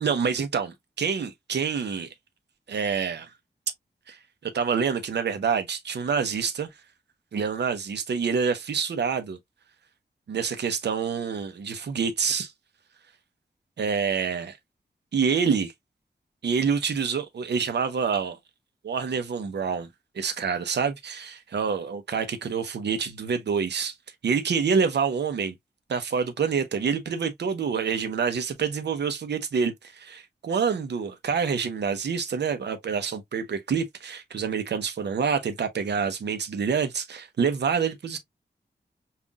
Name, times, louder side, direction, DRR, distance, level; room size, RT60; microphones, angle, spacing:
voice 1, 0.0-2.1 2.7-3.3 4.1-6.7 7.3-9.4 10.3-12.5 13.8-14.6 15.1-15.7 16.4-18.4 18.8-19.9 20.1-23.9 24.2-25.5 25.9-38.2, right 6 dB, 80° right, 0.8 m, -27 dB
5.6 x 2.5 x 2.3 m
wide cardioid pair, 120°, 17 cm